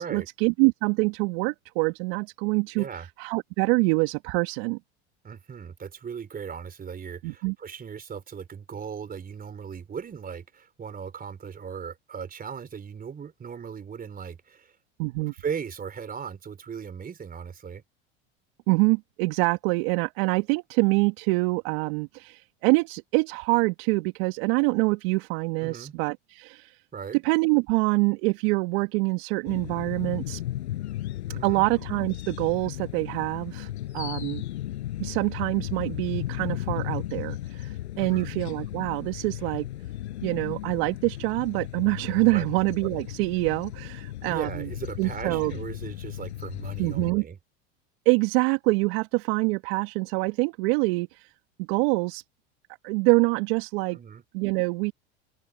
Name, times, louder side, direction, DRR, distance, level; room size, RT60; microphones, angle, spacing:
voice 1, 0.0-4.8 7.2-7.5 15.0-15.3 18.7-26.8 27.2-30.4 31.4-34.4 35.0-39.7 40.2-44.7 45.0-45.6 46.8-47.2 48.0-51.3 51.7-52.2 52.8-54.0 54.3-54.9, right 28 dB, 65° right, 2.8 m, -25 dB
voice 2, 2.7-3.1 5.2-14.7 15.3-17.8 25.6-25.9 26.9-27.2 31.3-31.6 38.0-38.3 42.3-42.5 44.3-47.4 53.9-54.2, right 7 dB, 25° right, 4.6 m, -37 dB
sound 1, 29.5-47.1, left 14 dB, 80° left, 5.5 m, -35 dB
open air
hypercardioid pair, 90°, 33 cm